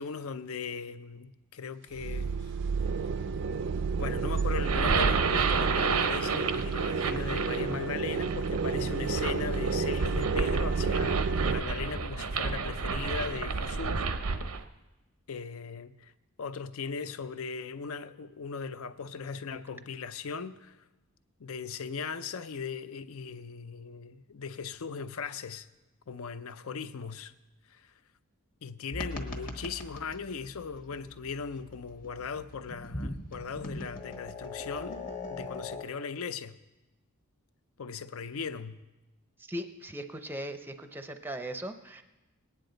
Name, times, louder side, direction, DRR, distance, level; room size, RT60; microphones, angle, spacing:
voice 1, 0.0-2.5 4.0-14.0 15.3-16.1 16.4-20.8 21.4-25.7 26.1-27.3 27.7-27.9 28.6-36.6 37.8-38.8, left 5 dB, 70° left, 0.5 m, -38 dB
sound 1, 1.9-11.6, right 5 dB, 60° right, 0.4 m, -30 dB
sound 2, 4.5-14.6, right 5 dB, 85° right, 0.7 m, -31 dB
sound 3, 28.9-35.8, left 2 dB, 40° left, 1.3 m, -41 dB
voice 2, 39.4-42.0, right 1 dB, 10° right, 0.6 m, -39 dB
19.5 x 9.6 x 3.9 m
head